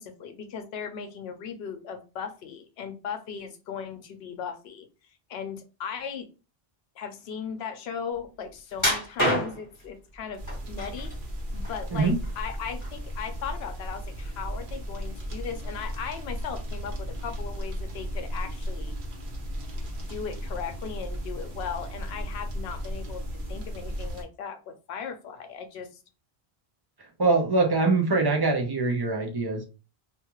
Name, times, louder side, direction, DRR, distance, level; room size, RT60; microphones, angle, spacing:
voice 1, 0.0-4.9 5.3-6.3 7.0-11.1 11.5-19.0 20.0-23.2 23.5-25.9, left 7 dB, 80° left, 7 dB, 0.8 m, -37 dB
sound 1, 8.8-9.8 10.5-11.1 11.5-12.5 12.8-13.0 13.5-13.6, equal, 15° left, 1.3 m, -27 dB
sound 2, 10.4-24.2, equal, 60° right, 0.9 m, -35 dB
voice 2, 27.2-29.6, right 3 dB, 30° right, 1 dB, 0.5 m, -23 dB
2.5 x 2.3 x 2.9 m, 0.32 s
omnidirectional pair, 1.1 m